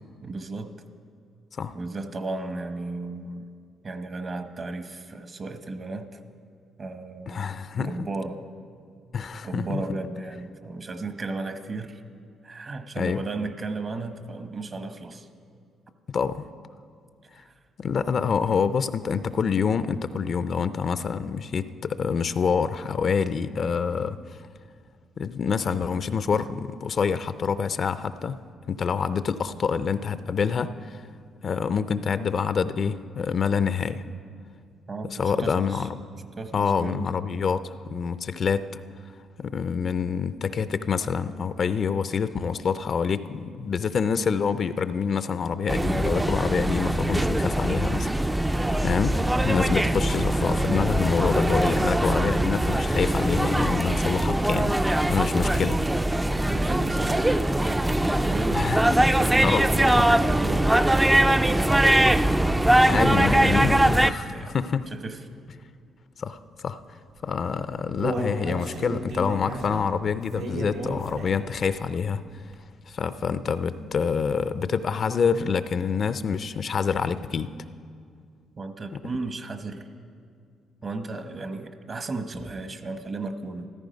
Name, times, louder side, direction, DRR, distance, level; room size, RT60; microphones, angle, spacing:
voice 1, 0.2-0.7 1.7-3.5 3.8-6.2 6.8-8.4 9.4-12.0 12.4-15.3 34.9-35.9 36.4-37.1 50.7-50.8 56.4-58.6 58.9-60.7 61.0-61.8 62.1-62.4 62.6-63.7 64.0-64.6 64.9-65.2 78.6-79.8 80.8-83.7, right 3 dB, 40° right, 9 dB, 1.0 m, -34 dB
voice 2, 7.3-8.1 9.1-10.0 13.0-13.2 16.1-16.5 17.8-24.2 25.2-28.4 28.7-31.0 31.4-34.0 35.1-36.0 36.5-38.8 39.4-48.1 48.4-55.8 58.5-58.8 59.4-60.2 62.9-64.9 66.2-66.8 67.2-72.2 72.9-77.5 78.9-79.0, left 6 dB, 50° left, 13 dB, 0.5 m, -26 dB
sound 1, 45.7-64.1, right 1 dB, 10° right, 0.4 m, -22 dB
Human voice, 67.4-71.6 72.0-72.1 72.5-72.6, right 1 dB, 90° right, 2.7 m, -33 dB
14.5 x 13.5 x 5.2 m, 2.2 s
cardioid pair, 90°, 0 cm